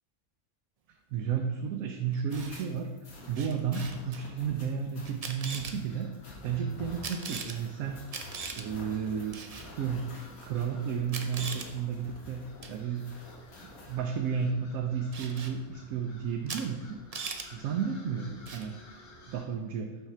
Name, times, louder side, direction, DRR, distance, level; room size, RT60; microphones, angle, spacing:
voice 1, 1.1-6.1 6.4-8.0 8.5-9.4 9.7-10.1 10.4-12.4 12.7-13.1 13.9-17.0 17.5-18.7 19.3-19.9, right 7 dB, 80° right, 4 dB, 1.0 m, -32 dB
Camera, 2.1-2.7 3.3-4.2 5.0-5.7 7.0-7.6 8.1-8.6 9.3-9.7 10.6-10.7 11.1-11.7 12.6-12.8 15.1-15.5 16.5-16.6 16.9-17.5 18.5-18.7, right 4 dB, 60° right, 0.4 m, -39 dB
sound 1, 2.3-14.0, left 2 dB, 80° left, 1.8 m, -49 dB
sound 2, 5.6-19.4, left 1 dB, 50° left, 1.7 m, -55 dB
5.7 x 4.5 x 5.6 m, 1.2 s
omnidirectional pair, 1.5 m